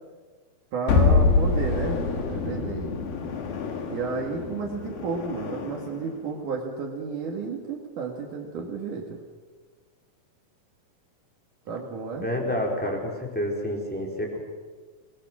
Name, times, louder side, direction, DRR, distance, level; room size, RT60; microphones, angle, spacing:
voice 1, 0.7-2.9 3.9-9.2 11.7-12.3, right 4 dB, 65° right, 0 dB, 3.3 m, -32 dB
sound 1, 0.9-6.0, left 4 dB, 85° left, 3.9 m, -25 dB
voice 2, 12.1-14.4, left 1 dB, ahead, -1 dB, 4.1 m, -29 dB
27.0 x 20.5 x 6.2 m, 1.5 s
omnidirectional pair, 4.2 m